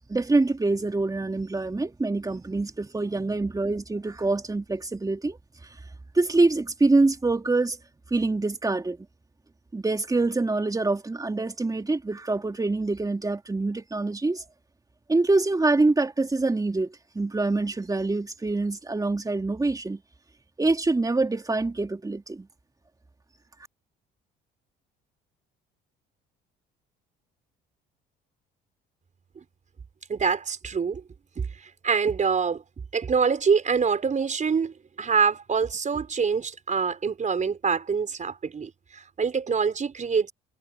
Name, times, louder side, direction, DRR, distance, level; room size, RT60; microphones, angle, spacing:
voice 1, 0.1-5.4 6.1-7.8 8.1-9.0 9.7-14.4 15.1-20.0 20.6-22.5, right 3 dB, 15° right, 2.8 m, -25 dB
voice 2, 30.1-31.0 31.3-32.6 32.9-40.3, right 5 dB, 35° right, 5.1 m, -25 dB
supercardioid pair, 75°, 21 cm